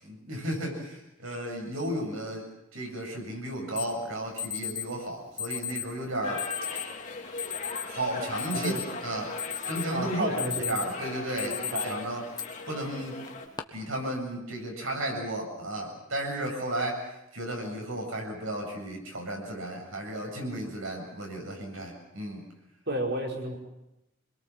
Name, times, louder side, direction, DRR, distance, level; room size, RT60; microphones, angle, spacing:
voice 1, 0.0-2.5 2.7-6.4 7.9-8.8 9.0-9.4 9.7-12.2 12.7-13.2 13.7-22.4, right 1 dB, 75° right, 1 dB, 7.7 m, -34 dB
Alarm, 3.8-3.9 4.4-4.8 5.4-5.9 6.4-6.9 7.4-7.8 8.2-9.0 9.4-9.9 10.2-10.9 11.4-11.8 12.4-12.5 13.2-13.6, left 8 dB, 20° left, 1.5 m, -34 dB
sound 1, 6.2-13.5, left 3 dB, 35° left, 2.9 m, -39 dB
voice 2, 9.9-10.8 11.4-11.9 22.9-23.6, right 1 dB, 55° right, 1 dB, 5.1 m, -31 dB
26.5 x 21.5 x 7.5 m, 0.89 s
head